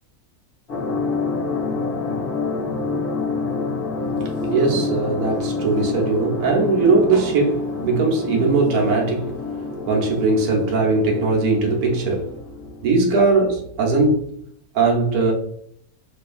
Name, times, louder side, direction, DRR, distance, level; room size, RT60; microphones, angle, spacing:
sound 1, 0.7-13.2, left 4 dB, 60° left, 0.6 m, -28 dB
voice 1, 4.5-9.3 9.9-12.3 12.8-14.3 14.7-15.3, right 3 dB, 80° right, -1 dB, 1.0 m, -19 dB
2.6 x 2.4 x 2.3 m, 0.68 s
omnidirectional pair, 1.5 m